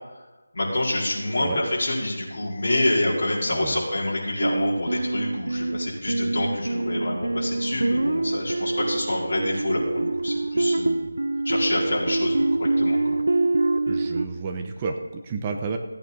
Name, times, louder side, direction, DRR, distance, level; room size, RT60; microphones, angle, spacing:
voice 1, 0.5-11.1 11.4-13.2, left 1 dB, 50° left, -6 dB, 4.5 m, -27 dB
voice 2, 3.5-3.8 13.8-15.8, right 4 dB, 20° right, 4 dB, 1.0 m, -31 dB
sound 1, 4.4-14.3, right 2 dB, 85° right, 0.7 m, -25 dB
15.5 x 8.9 x 4.1 m, 1.2 s
figure-of-eight pair, 170°, 0 cm